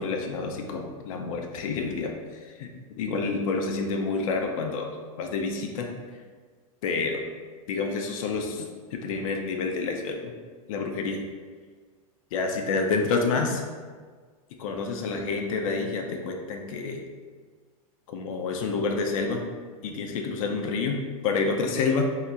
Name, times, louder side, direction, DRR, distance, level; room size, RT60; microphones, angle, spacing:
voice 1, 0.0-2.1 2.6-2.7 3.0-4.9 5.2-5.9 6.8-7.2 7.7-10.3 10.7-11.2 12.3-13.6 14.6-17.0 18.1-19.4 19.8-22.1, left 4 dB, 65° left, 3 dB, 0.6 m, -28 dB
4.2 x 2.9 x 2.4 m, 1.5 s
hypercardioid pair, 120°, 19 cm